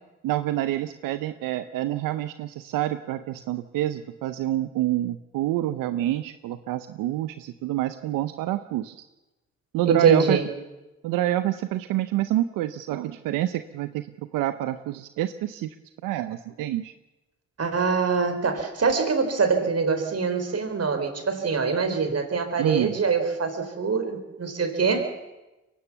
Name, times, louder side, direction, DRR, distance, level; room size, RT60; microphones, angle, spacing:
voice 1, 0.2-9.0 9.7-10.4 11.0-15.8 16.0-16.9 22.6-23.0, right 14 dB, 90° right, 11 dB, 0.7 m, -27 dB
voice 2, 9.9-10.5 17.6-25.1, right 5 dB, 50° right, 7 dB, 4.1 m, -24 dB
23.0 x 18.0 x 7.2 m, 1.1 s
supercardioid pair, 55°, 32 cm